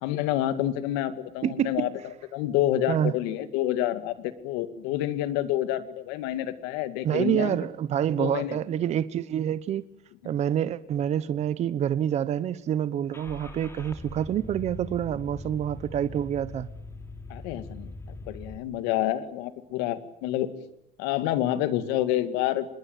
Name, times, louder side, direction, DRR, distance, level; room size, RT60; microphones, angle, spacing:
voice 1, 0.0-1.9 2.3-7.6 8.2-8.6 17.3-20.5 21.0-22.7, left 13 dB, 90° left, 2.2 m, -28 dB
voice 2, 1.4-1.9 2.9-3.1 7.0-9.8 10.2-16.7, right 10 dB, 40° right, 1.0 m, -27 dB
Car / Engine starting, 13.1-18.6, left 2 dB, 15° left, 2.9 m, -42 dB
26.0 x 21.5 x 9.2 m
cardioid pair, 135°, 17 cm